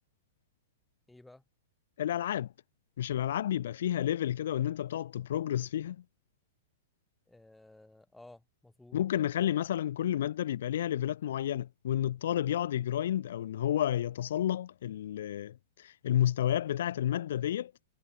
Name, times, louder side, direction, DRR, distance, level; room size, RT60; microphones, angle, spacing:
voice 1, 1.1-1.4 7.3-9.0, left 2 dB, 5° left, 2.7 m, -55 dB
voice 2, 2.0-2.5 3.0-6.0 8.9-17.9, left 11 dB, 60° left, 0.4 m, -31 dB
figure-of-eight pair, 105°, 0 cm